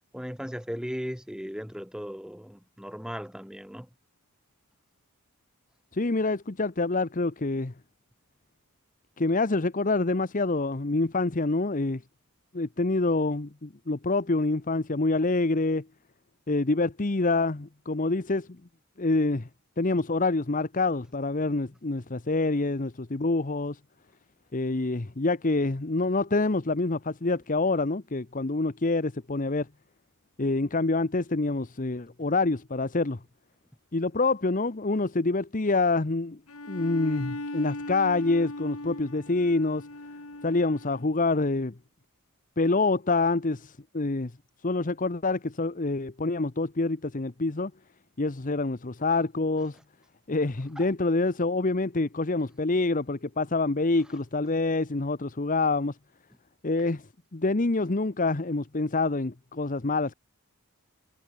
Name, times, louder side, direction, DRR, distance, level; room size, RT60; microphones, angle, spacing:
voice 1, 0.1-3.9 49.6-49.7 50.7-50.9 54.0-54.1, equal, 5° right, 6.0 m, -37 dB
voice 2, 5.9-7.7 9.2-12.0 12.5-15.9 16.5-18.6 19.0-19.5 19.8-23.8 24.5-29.7 30.4-33.2 33.9-36.4 36.7-39.9 40.4-41.7 42.6-44.3 44.6-47.7 48.2-49.8 50.3-56.0 56.6-60.1, left 3 dB, 35° left, 0.9 m, -26 dB
Bowed string instrument, 36.5-41.2, left 2 dB, 75° left, 3.0 m, -38 dB
head